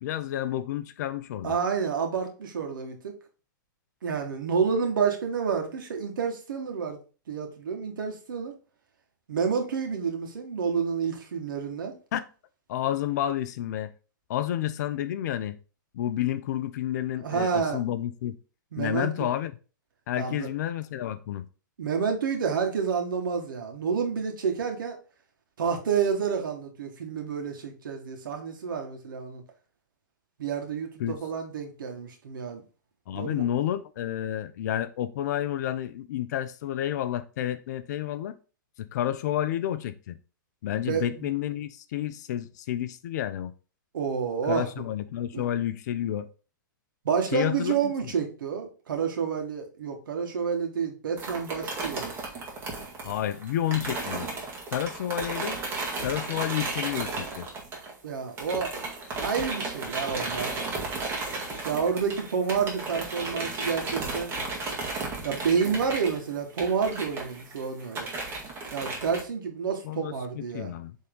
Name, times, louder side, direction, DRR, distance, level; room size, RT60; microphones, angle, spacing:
voice 1, 0.0-1.6 12.1-12.2 12.7-13.9 14.3-15.6 15.9-18.3 18.8-19.5 20.1-21.5 31.0-31.1 33.1-38.3 38.8-40.2 40.6-43.5 44.4-46.3 47.3-48.1 53.0-54.3 54.7-55.6 56.0-57.5 69.8-71.0, left 11 dB, 55° left, 0.7 m, -30 dB
voice 2, 1.4-3.1 4.0-7.0 7.3-8.5 9.3-11.9 17.2-17.8 18.7-19.3 20.2-20.5 21.8-25.0 25.6-29.4 30.4-32.6 33.1-33.4 40.9-41.3 43.9-44.7 45.3-45.4 47.0-52.1 58.0-58.7 59.2-60.6 61.6-64.3 65.2-68.1 68.7-70.7, right 6 dB, 80° right, 2.0 m, -29 dB
sound 1, 51.2-58.1 58.4-69.2, right 3 dB, 20° right, 1.9 m, -34 dB
7.5 x 3.7 x 3.9 m
hypercardioid pair, 140°, 11 cm